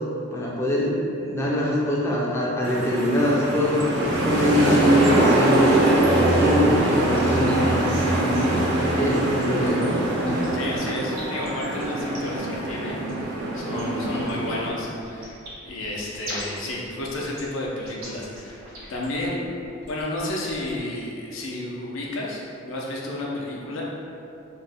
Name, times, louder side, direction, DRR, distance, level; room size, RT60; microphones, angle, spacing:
voice 1, 0.3-7.9 8.9-9.9 13.7-13.9, equal, 15° left, -5 dB, 0.3 m, -24 dB
sound 1, 2.6-14.7, right 1 dB, 55° right, 0.4 m, -22 dB
sound 2, 3.8-20.8, right 1 dB, 75° right, 0.8 m, -42 dB
voice 2, 10.5-13.0 13.5-15.4 15.6-19.4 19.9-23.8, left 1 dB, 70° left, -3 dB, 0.5 m, -31 dB
2.5 x 2.0 x 3.4 m, 2.6 s
head